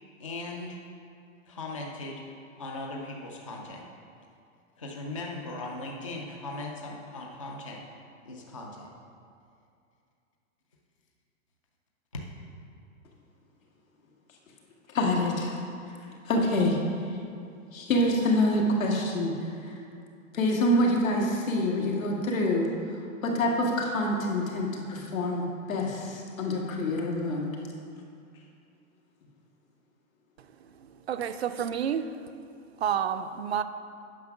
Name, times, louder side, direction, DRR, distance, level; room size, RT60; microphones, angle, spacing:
voice 1, 0.2-0.8 1.5-2.3 2.6-3.9 4.8-7.8 8.2-8.9 12.1-12.2, left 2 dB, 25° left, 0 dB, 0.4 m, -38 dB
voice 2, 14.9-15.6 16.3-16.8 17.7-19.3 19.6-19.8 20.3-22.7 23.2-25.4 25.7-27.5, left 1 dB, 80° left, -1 dB, 2.0 m, -26 dB
voice 3, 30.4-32.2 32.8-33.6, right 8 dB, 50° right, 9 dB, 0.4 m, -30 dB
9.3 x 5.9 x 5.8 m, 2.4 s
hypercardioid pair, 175°, 40 cm